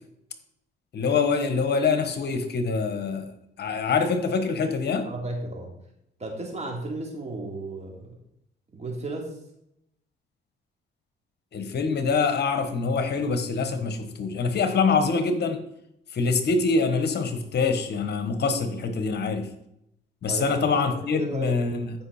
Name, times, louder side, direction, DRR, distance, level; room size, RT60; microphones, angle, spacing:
voice 1, 0.9-3.3 3.6-5.1 11.5-15.6 16.1-19.5 20.2-21.9, left 4 dB, 55° left, 8 dB, 1.4 m, -25 dB
voice 2, 5.0-5.7 6.2-8.1 8.7-9.4 20.3-21.5, right 2 dB, 35° right, 0 dB, 3.3 m, -34 dB
14.0 x 5.6 x 4.3 m, 0.78 s
cardioid pair, 90°, 20 cm